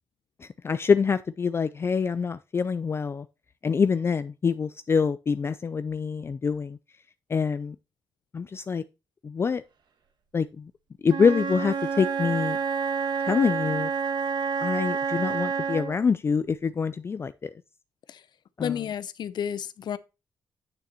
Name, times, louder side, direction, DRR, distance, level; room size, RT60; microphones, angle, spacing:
voice 1, 0.4-3.3 3.6-6.8 7.3-7.8 8.3-8.8 9.2-9.6 10.3-10.7 11.0-12.6 13.2-13.9 14.6-17.5 18.6-18.8, left 5 dB, 30° left, 0.3 m, -25 dB
Wind instrument woodwind instrument, 11.0-16.0, right 5 dB, 70° right, 1.2 m, -28 dB
voice 2, 18.6-20.0, left 9 dB, 70° left, 0.6 m, -31 dB
8.9 x 6.7 x 2.9 m
wide cardioid pair, 135°, 8 cm